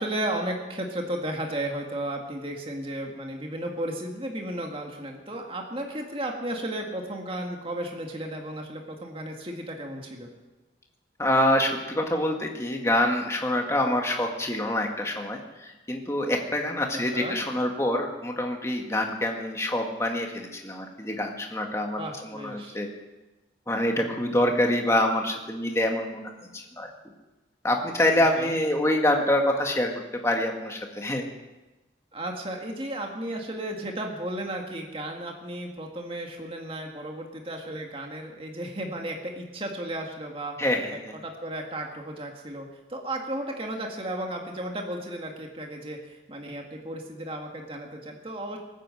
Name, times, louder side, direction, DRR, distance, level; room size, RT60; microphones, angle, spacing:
voice 1, 0.0-10.3 16.9-17.4 22.0-22.8 28.4-28.6 32.1-40.5 40.9-48.6, right 1 dB, 30° right, 2 dB, 2.0 m, -34 dB
voice 2, 11.2-22.9 23.7-26.9 27.6-29.9 30.2-31.3 40.6-41.2, left 1 dB, 15° left, 2 dB, 1.8 m, -26 dB
19.5 x 9.1 x 7.8 m, 1.1 s
head